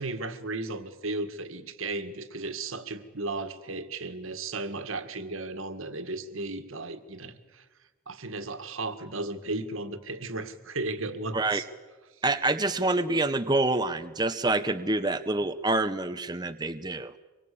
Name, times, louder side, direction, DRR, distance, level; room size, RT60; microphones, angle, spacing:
voice 1, 0.0-7.7 8.1-11.7, right 2 dB, 65° right, 9 dB, 1.9 m, -35 dB
voice 2, 12.2-17.1, right 2 dB, 20° right, 9 dB, 0.7 m, -27 dB
25.5 x 23.0 x 8.5 m, 1.3 s
head